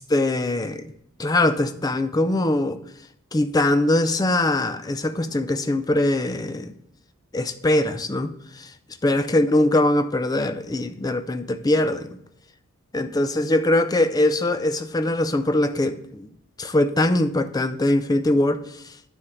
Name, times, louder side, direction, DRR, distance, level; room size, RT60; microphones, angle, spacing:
voice 1, 0.1-0.9 1.2-2.8 3.3-6.7 7.3-8.7 9.0-12.2 12.9-16.3 16.6-18.8, left 1 dB, 15° left, 10 dB, 0.4 m, -22 dB
9.5 x 3.6 x 5.7 m, 0.75 s
head